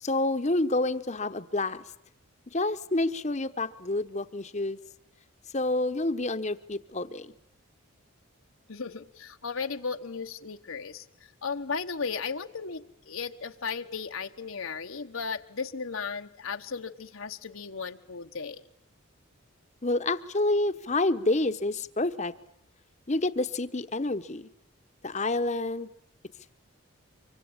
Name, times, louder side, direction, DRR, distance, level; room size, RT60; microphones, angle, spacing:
voice 1, 0.0-1.8 2.5-4.8 5.5-7.3 19.8-22.3 23.1-24.5 25.0-25.9, left 2 dB, 30° left, 11 dB, 1.0 m, -28 dB
voice 2, 8.7-11.1 11.4-18.7, left 5 dB, 75° left, 6 dB, 1.1 m, -35 dB
25.0 x 24.0 x 8.8 m, 0.78 s
head